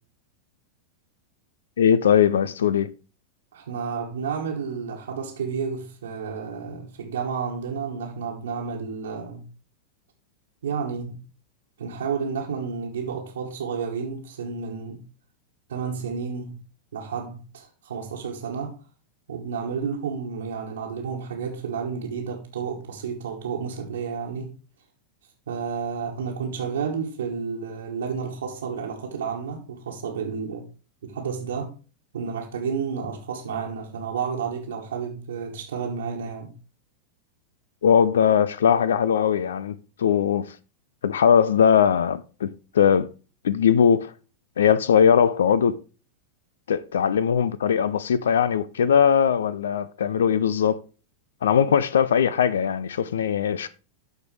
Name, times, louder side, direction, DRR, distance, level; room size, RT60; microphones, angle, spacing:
voice 1, 1.8-2.9 37.8-40.5 41.0-43.1 43.4-44.1 44.6-45.8 46.7-50.8 51.4-53.7, left 8 dB, 65° left, 0.4 m, -20 dB
voice 2, 3.5-9.5 10.6-11.2 11.8-15.0 15.7-16.6 16.9-18.8 19.3-24.5 25.5-30.7 31.0-31.8 32.1-36.5, right 6 dB, 65° right, 1.4 m, -31 dB
13.0 x 4.4 x 3.2 m
figure-of-eight pair, 90°, 0 cm